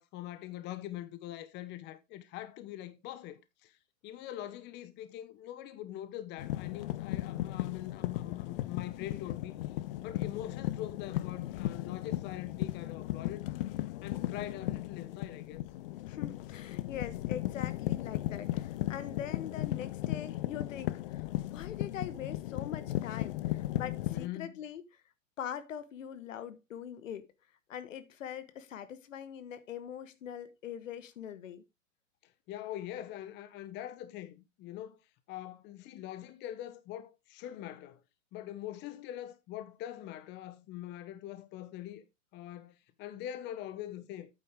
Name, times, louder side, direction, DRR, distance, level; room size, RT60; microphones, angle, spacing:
voice 1, 0.0-3.8 4.0-9.6 10.0-13.5 14.0-15.6 24.1-24.5 32.2-35.0 35.3-38.0 38.3-42.0 42.3-44.3, left 12 dB, 25° left, 0.9 m, -43 dB
sound 1, 6.4-24.3, left 16 dB, 45° left, 0.5 m, -36 dB
voice 2, 16.1-25.0 25.4-27.3 27.7-31.6, left 9 dB, 80° left, 1.4 m, -43 dB
8.9 x 7.8 x 3.6 m
hypercardioid pair, 135°, 38 cm